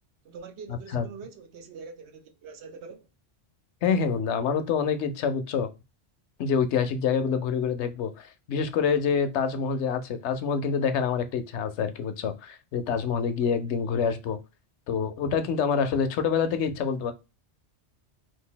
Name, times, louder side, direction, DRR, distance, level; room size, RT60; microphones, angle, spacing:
voice 1, 0.2-3.1, right 5 dB, 70° right, 0.9 m, -44 dB
voice 2, 3.8-5.7 6.4-14.4 14.9-17.1, left 6 dB, 75° left, 0.9 m, -26 dB
2.8 x 2.4 x 3.7 m
omnidirectional pair, 1.2 m